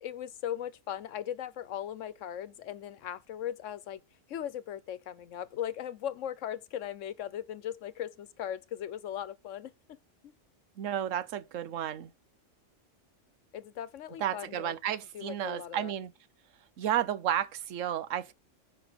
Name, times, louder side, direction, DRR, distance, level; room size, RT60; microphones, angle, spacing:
voice 1, 0.0-4.0 4.3-9.7 10.2-10.3 13.5-14.7 15.1-15.9, left 10 dB, 80° left, 1.1 m, -38 dB
voice 2, 10.8-12.1 14.2-16.1 16.8-18.3, right 10 dB, 90° right, 1.1 m, -32 dB
9.6 x 5.4 x 5.1 m
omnidirectional pair, 1.3 m